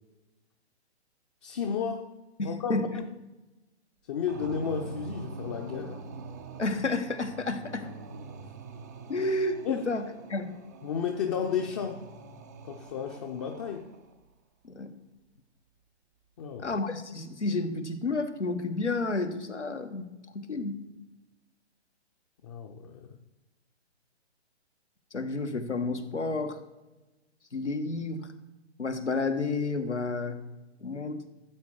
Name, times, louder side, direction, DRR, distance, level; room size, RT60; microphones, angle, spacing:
voice 1, 1.4-2.1 2.4-3.0 4.1-6.0 9.6-9.9 10.8-12.0 12.6-13.9 16.4-16.8 22.4-23.2, left 7 dB, 25° left, 3 dB, 0.6 m, -33 dB
voice 2, 2.4-2.9 6.6-7.9 9.1-10.5 14.6-14.9 16.6-20.1 20.3-20.8 25.1-26.6 27.5-28.3 28.8-30.4 30.8-31.2, left 3 dB, 90° left, 7 dB, 1.5 m, -31 dB
sound 1, 4.3-14.2, right 3 dB, 15° right, 0.4 m, -44 dB
13.0 x 8.0 x 4.8 m, 1.1 s
figure-of-eight pair, 130°, 34 cm